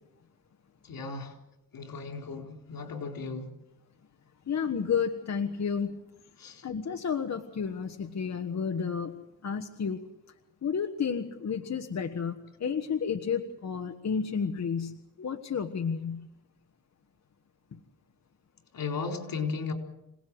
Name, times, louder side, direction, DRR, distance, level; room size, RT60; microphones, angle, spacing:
voice 1, 0.8-1.4 1.7-3.5 6.4-6.6 18.7-19.7, left 4 dB, 80° left, 3 dB, 4.4 m, -35 dB
voice 2, 4.5-6.0 6.6-9.2 9.4-10.0 10.6-16.3 17.7-17.8, left 6 dB, 55° left, 4 dB, 1.4 m, -31 dB
27.0 x 18.5 x 7.9 m, 0.88 s
wide cardioid pair, 140°, 34 cm